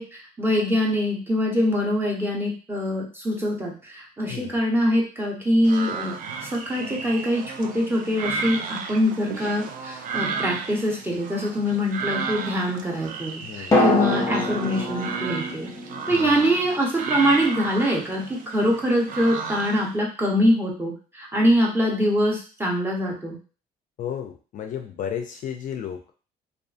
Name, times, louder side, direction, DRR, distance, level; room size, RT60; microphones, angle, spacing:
voice 1, 0.0-6.1 6.4-15.7 16.1-18.2 18.5-23.4, equal, 15° right, -2 dB, 0.8 m, -24 dB
sound 1, 5.6-19.9, right 5 dB, 55° right, 0.4 m, -33 dB
sound 2, 10.1-11.3 13.7-17.7 17.9-18.0, left 2 dB, 20° left, 0.7 m, -27 dB
voice 2, 13.4-13.8 16.1-16.4 24.0-26.1, left 9 dB, 50° left, 4 dB, 0.4 m, -33 dB
2.5 x 2.4 x 2.4 m, 0.37 s
cardioid pair, 110°, 17 cm